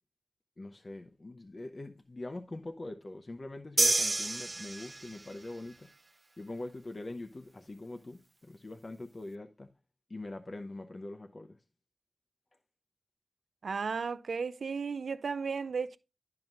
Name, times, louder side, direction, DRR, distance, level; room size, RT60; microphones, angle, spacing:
voice 1, 0.6-5.9 6.4-9.7 10.1-11.6, left 2 dB, 45° left, 0.7 m, -43 dB
sound 1, 3.8-5.3, right 2 dB, 45° right, 0.6 m, -29 dB
voice 2, 13.6-16.0, right 5 dB, 90° right, 0.4 m, -34 dB
11.0 x 5.8 x 2.6 m
wide cardioid pair, 55°, 0 cm